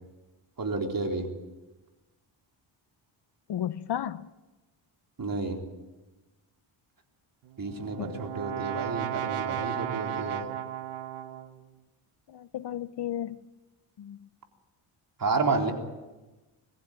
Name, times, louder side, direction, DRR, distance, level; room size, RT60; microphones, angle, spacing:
voice 1, 0.6-1.2 5.2-5.6 7.6-10.5 15.2-15.7, right 3 dB, 40° right, 2 dB, 4.0 m, -30 dB
voice 2, 3.5-4.3 8.0-8.1 12.3-13.4 14.0-14.2, left 10 dB, 55° left, 15 dB, 0.8 m, -33 dB
Brass instrument, 7.5-11.6, right 12 dB, 90° right, 1.5 m, -35 dB
22.0 x 15.0 x 9.0 m, 1.1 s
cardioid pair, 80°, 50 cm